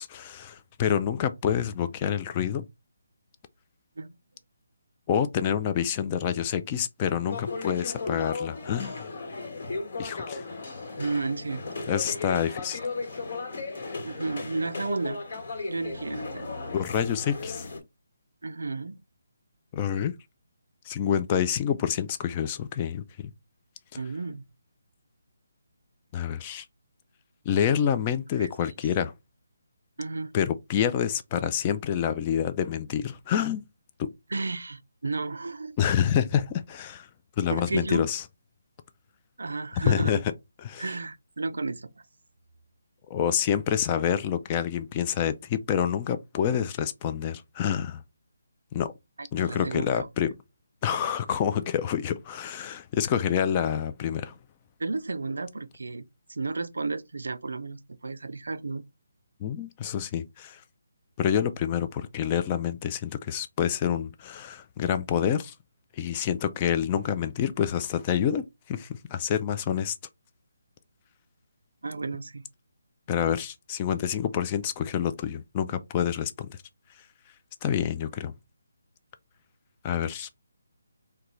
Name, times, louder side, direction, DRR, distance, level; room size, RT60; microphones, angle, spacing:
voice 1, 0.0-2.7 5.1-9.1 10.0-10.5 11.9-12.8 16.7-17.7 19.7-20.1 20.9-23.3 26.1-26.6 27.5-29.1 30.3-33.6 34.0-34.1 35.8-37.1 37.4-38.2 39.8-40.2 40.6-40.8 43.1-48.0 48.7-48.9 49.3-50.3 50.8-54.3 59.4-60.6 61.2-65.5 66.0-70.0 73.1-76.6 77.6-78.3 79.8-80.3, left 9 dB, 25° left, 0.3 m, -27 dB
sound 1, 7.3-17.8, left 3 dB, 55° left, 1.3 m, -36 dB
voice 2, 11.0-11.6 14.0-15.2 15.7-16.6 18.4-19.0 23.9-24.5 28.4-28.5 30.0-30.3 34.3-35.8 37.5-38.0 39.4-40.1 40.8-41.9 49.2-50.1 54.8-58.8 71.8-72.4, right 3 dB, 80° right, 0.4 m, -32 dB
3.6 x 2.2 x 3.0 m
figure-of-eight pair, 155°, 0 cm